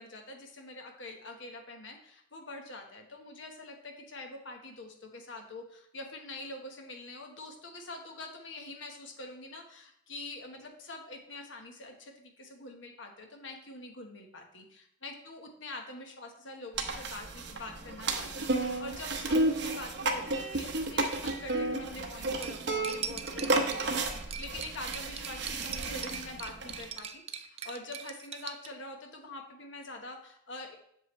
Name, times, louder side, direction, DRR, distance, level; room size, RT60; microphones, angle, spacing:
voice 1, 0.0-30.8, left 2 dB, 70° left, 3 dB, 1.2 m, -45 dB
sound 1, 16.8-26.9, right 2 dB, 60° right, 0.8 m, -32 dB
Cutlery silverware, 22.4-28.7, right 7 dB, 30° right, 0.3 m, -41 dB
7.6 x 6.8 x 3.1 m, 0.72 s
head